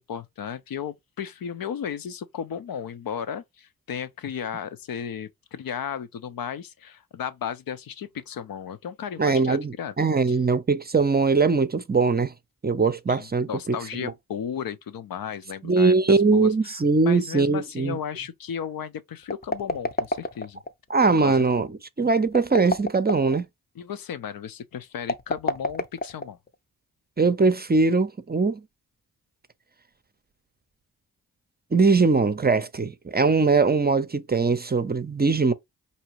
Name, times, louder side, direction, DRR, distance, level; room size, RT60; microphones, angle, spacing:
voice 1, 0.0-9.9 10.3-10.4 13.1-16.8 17.0-20.6 21.2-21.4 22.0-22.1 23.8-26.4, left 8 dB, 65° left, 0.7 m, -34 dB
voice 2, 9.2-12.3 12.6-13.8 14.0-14.1 15.6-18.0 20.9-21.7 22.0-23.4 27.2-28.6 31.7-35.5, right 4 dB, 25° right, 0.6 m, -21 dB
sound 1, 19.2-20.7 22.2-23.4 25.0-26.5, left 2 dB, 25° left, 0.7 m, -28 dB
4.7 x 2.8 x 3.0 m
supercardioid pair, 40°, 38 cm